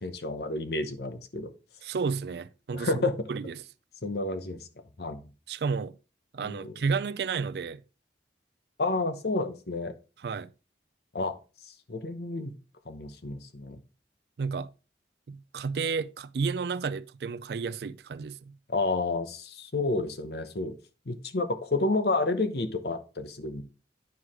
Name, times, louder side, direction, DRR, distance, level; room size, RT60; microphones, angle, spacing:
voice 1, 0.0-1.5 2.7-3.3 4.0-4.7 5.0-5.3 6.4-6.7 8.8-9.9 11.1-11.3 11.6-12.5 12.9-13.8 18.7-20.7 21.1-23.6, left 2 dB, 60° left, 0.9 m, -30 dB
voice 2, 1.8-3.5 5.5-5.9 6.3-7.8 10.2-10.5 14.4-14.7 15.3-18.5, right 5 dB, 65° right, 0.4 m, -32 dB
9.5 x 4.7 x 3.6 m
head